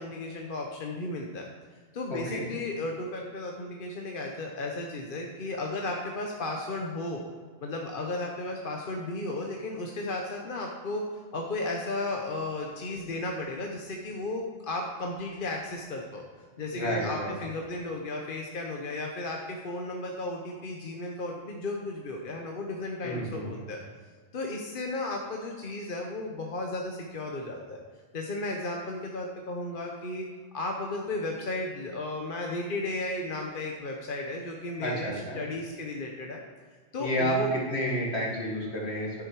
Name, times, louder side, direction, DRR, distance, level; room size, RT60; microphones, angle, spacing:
voice 1, 0.0-1.5 1.9-7.2 7.6-11.0 11.3-16.2 16.6-23.8 24.3-27.8 28.1-30.3 30.5-36.4 36.9-37.5, left 2 dB, 50° left, 1 dB, 1.1 m, -34 dB
voice 2, 2.1-2.4 16.7-17.6 23.0-23.7 34.8-35.4 37.0-39.2, equal, 65° left, -3 dB, 2.3 m, -31 dB
10.0 x 7.5 x 4.6 m, 1.5 s
omnidirectional pair, 1.2 m